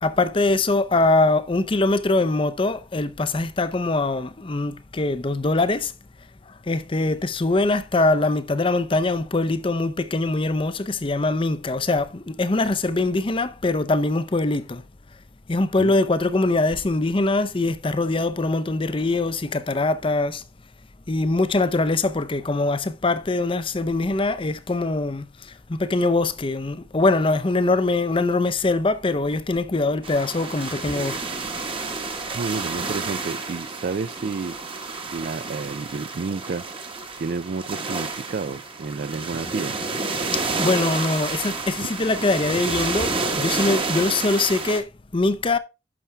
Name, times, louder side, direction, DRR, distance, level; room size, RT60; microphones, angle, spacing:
voice 1, 0.0-5.9 6.5-14.8 15.5-20.4 21.1-31.2 40.2-45.6, left 2 dB, 30° left, 0.6 m, -23 dB
sound 1, 30.0-44.8, right 3 dB, 30° right, 1.2 m, -30 dB
voice 2, 32.3-34.6 35.1-36.6 37.2-39.8 41.8-41.9, right 4 dB, 55° right, 0.4 m, -30 dB
11.0 x 6.0 x 3.3 m
head